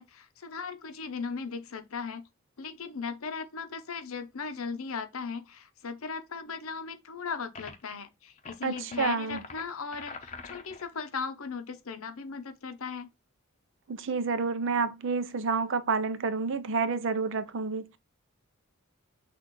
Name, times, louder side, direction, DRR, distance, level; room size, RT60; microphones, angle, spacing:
voice 1, 0.0-2.3 2.6-13.1, left 5 dB, 90° left, 0.8 m, -37 dB
sound 1, 7.5-7.9 8.4-10.9, left 4 dB, 35° left, 0.7 m, -45 dB
voice 2, 8.6-9.4 13.9-18.0, right 4 dB, 65° right, 0.6 m, -29 dB
6.3 x 2.5 x 3.0 m
head